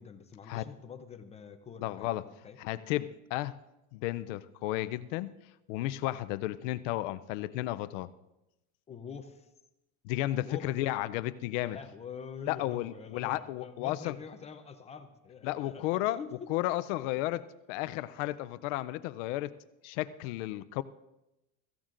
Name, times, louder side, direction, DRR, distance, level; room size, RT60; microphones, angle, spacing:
voice 1, 0.0-2.6 8.9-9.5 10.3-10.7 11.6-16.5, left 6 dB, 15° left, 8 dB, 0.5 m, -45 dB
voice 2, 1.8-2.2 2.6-3.5 3.9-5.3 5.7-8.1 10.0-11.8 12.5-14.2 15.4-16.2 16.5-19.5 19.8-20.8, left 16 dB, 60° left, 14 dB, 0.6 m, -33 dB
24.0 x 15.0 x 2.5 m, 0.93 s
supercardioid pair, 155°, 42 cm